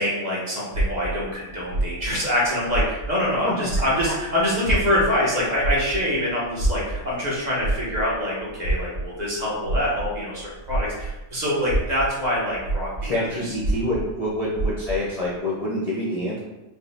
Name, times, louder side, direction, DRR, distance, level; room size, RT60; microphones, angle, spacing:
voice 1, 0.0-12.9 13.2-13.5, left 1 dB, 35° right, -6 dB, 1.0 m, -25 dB
sound 1, 0.7-3.4 3.6-11.2 11.6-15.1, right 2 dB, 60° right, 1.5 m, -27 dB
voice 2, 13.0-16.4, left 1 dB, 40° left, -6 dB, 0.6 m, -26 dB
4.8 x 2.1 x 3.3 m, 1.0 s
omnidirectional pair, 1.3 m